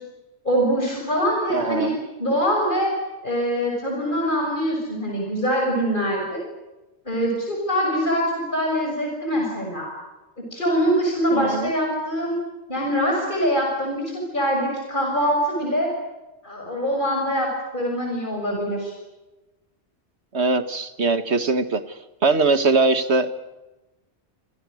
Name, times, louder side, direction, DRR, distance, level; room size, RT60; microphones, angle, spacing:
voice 1, 0.4-1.9 2.2-2.9 3.2-6.4 7.0-9.9 10.4-12.4 12.7-15.9 16.4-18.9, equal, 45° left, 0 dB, 6.7 m, -23 dB
voice 2, 1.5-2.0 11.3-11.7 20.3-23.3, right 3 dB, 70° right, 10 dB, 2.0 m, -21 dB
28.5 x 27.0 x 6.5 m, 1.1 s
omnidirectional pair, 1.2 m